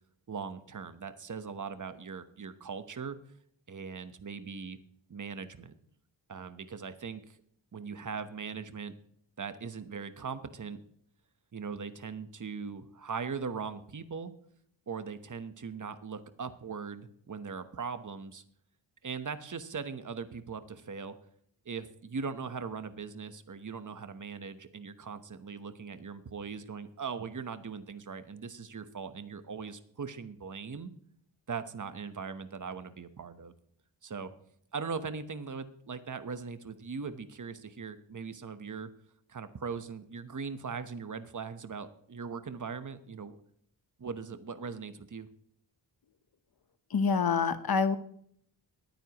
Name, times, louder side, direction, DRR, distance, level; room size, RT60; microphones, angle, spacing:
voice 1, 0.3-3.2 3.7-4.8 5.1-5.7 6.3-7.4 7.7-8.9 9.4-10.8 11.5-14.3 14.9-18.4 19.0-21.2 21.6-30.9 31.5-33.5 34.0-34.3 34.7-38.9 39.3-43.4 44.0-45.3, right 5 dB, 40° right, 11 dB, 1.1 m, -40 dB
voice 2, 46.9-48.0, left 5 dB, 50° left, 12 dB, 1.0 m, -26 dB
21.5 x 9.5 x 3.0 m, 0.66 s
wide cardioid pair, 80°, 45 cm